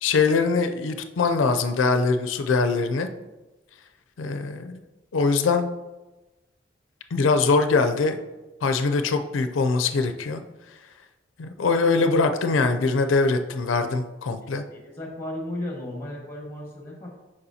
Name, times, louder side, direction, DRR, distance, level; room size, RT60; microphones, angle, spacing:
voice 1, 0.0-3.1 4.2-4.8 5.1-5.7 7.1-8.2 8.6-10.4 11.4-14.6, left 4 dB, 85° left, 8 dB, 0.4 m, -22 dB
voice 2, 14.7-17.1, left 1 dB, 15° left, -1 dB, 1.2 m, -34 dB
6.8 x 5.2 x 2.7 m, 1.1 s
head